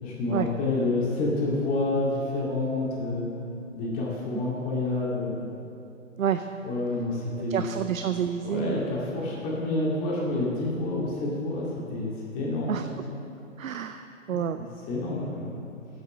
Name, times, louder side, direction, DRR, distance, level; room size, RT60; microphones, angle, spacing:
voice 1, 0.0-3.3 3.8-5.4 6.6-7.6 8.4-12.8 14.9-15.6, left 2 dB, 20° left, -5 dB, 2.1 m, -28 dB
voice 2, 6.2-6.5 7.5-8.8 12.7-12.9 13.6-14.7, right 8 dB, 85° right, 9 dB, 0.5 m, -29 dB
8.2 x 6.5 x 7.5 m, 2.7 s
figure-of-eight pair, 135°, 40 cm